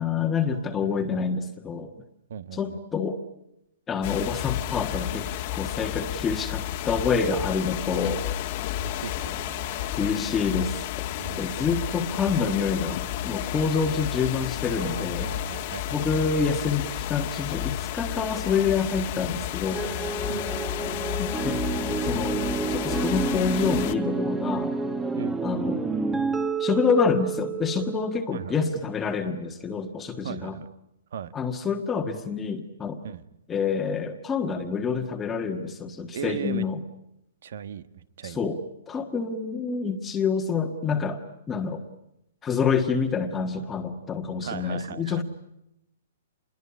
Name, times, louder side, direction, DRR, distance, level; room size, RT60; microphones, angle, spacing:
voice 1, 0.0-1.9 2.5-3.2 3.9-8.2 10.0-10.8 11.4-15.3 15.9-19.8 21.2-21.6 22.0-22.4 22.7-24.7 25.4-25.8 26.6-30.6 31.3-33.0 33.5-36.8 38.2-38.6 38.9-41.2 41.5-41.8 42.4-45.2, left 5 dB, 15° left, 4 dB, 1.5 m, -27 dB
voice 2, 2.3-2.8 8.6-10.0 11.2-11.6 14.7-16.1 20.3-20.5 25.2-25.4 28.3-28.6 30.2-30.7 31.1-31.3 33.0-33.2 36.1-36.7 37.4-38.4 44.4-45.2, right 8 dB, 65° right, 15 dB, 1.3 m, -37 dB
sound 1, 4.0-23.9, left 13 dB, 40° left, 1.5 m, -32 dB
sound 2, 19.7-28.2, right 4 dB, 10° right, 1.4 m, -29 dB
27.0 x 22.0 x 9.7 m, 0.83 s
hypercardioid pair, 150°, 0 cm